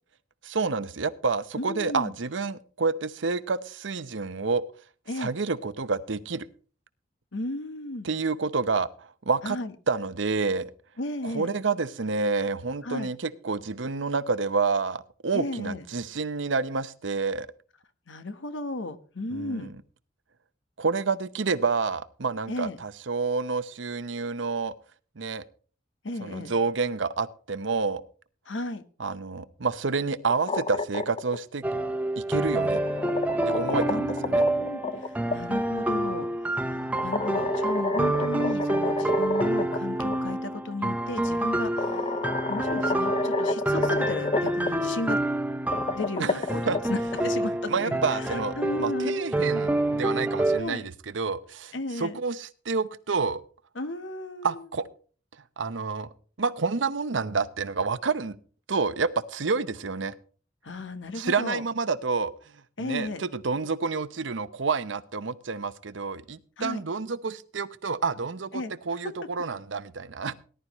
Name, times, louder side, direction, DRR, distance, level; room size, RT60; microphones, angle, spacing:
voice 1, 0.4-4.6 5.2-6.5 8.0-9.6 9.9-10.7 11.2-17.5 19.3-19.7 20.8-24.7 25.2-25.4 26.2-28.0 29.0-31.6 32.2-32.8 33.5-34.5 46.2-46.4 46.7-46.8 47.7-48.5 48.8-53.4 54.4-54.9 55.6-56.1 56.4-58.4 58.7-60.1 61.2-62.3 62.8-70.3, right 4 dB, 85° right, 14 dB, 0.8 m, -29 dB
voice 2, 1.6-2.1 5.1-5.3 7.3-8.1 9.4-9.7 11.0-11.5 12.8-13.1 15.3-15.8 18.1-19.7 22.5-22.8 26.0-26.5 28.5-28.8 33.9-42.2 42.5-45.2 45.9-49.2 50.6-50.9 51.7-52.2 53.7-54.7 60.6-61.6 62.8-63.3 66.6-66.8 68.5-68.7 69.0-69.1, left 2 dB, 85° left, 11 dB, 1.2 m, -34 dB
sound 1, 30.2-31.4 32.5-35.4 37.0-39.8 40.1-40.2 41.3-41.4 41.8-44.7 45.5-47.2, left 3 dB, 30° left, 0.7 m, -30 dB
sound 2, 31.6-50.6, right 1 dB, 10° right, 0.9 m, -28 dB
19.0 x 11.5 x 3.1 m, 0.40 s
head